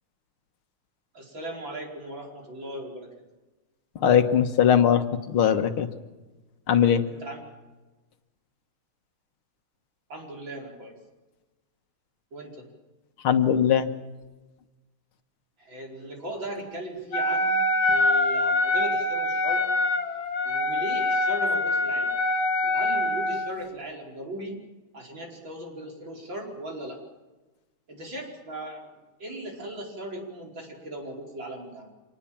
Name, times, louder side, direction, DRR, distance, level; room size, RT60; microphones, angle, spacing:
voice 1, 1.1-3.1 7.1-7.4 10.1-10.9 12.3-12.7 15.6-19.7 20.4-22.1 22.6-24.6 24.9-27.0 27.9-31.9, right 1 dB, 65° right, 0 dB, 5.6 m, -38 dB
voice 2, 4.0-5.9 6.7-7.0 13.2-13.9, left 8 dB, 90° left, 8 dB, 2.2 m, -20 dB
Wind instrument woodwind instrument, 17.1-23.6, left 2 dB, 70° left, 2.2 m, -24 dB
26.5 x 19.0 x 7.4 m, 1.2 s
omnidirectional pair, 2.3 m